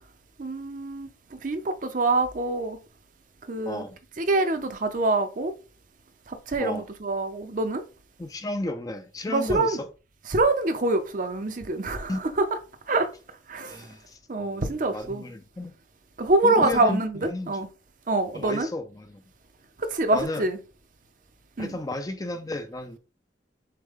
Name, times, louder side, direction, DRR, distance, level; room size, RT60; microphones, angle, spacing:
voice 1, 0.4-2.8 3.5-3.8 4.2-5.5 6.3-7.8 9.3-9.8 10.3-12.5 12.9-13.1 13.5-13.9 14.3-15.2 16.2-17.7 18.1-18.7 19.8-20.6 21.6-21.8, right 2 dB, 45° right, 0.6 m, -25 dB
voice 2, 3.7-4.0 6.6-6.9 8.2-9.9 12.1-12.2 13.7-15.8 16.4-17.6 18.3-19.2 20.1-20.5 21.6-23.0, left 2 dB, 20° left, 0.5 m, -33 dB
6.5 x 2.2 x 3.6 m
head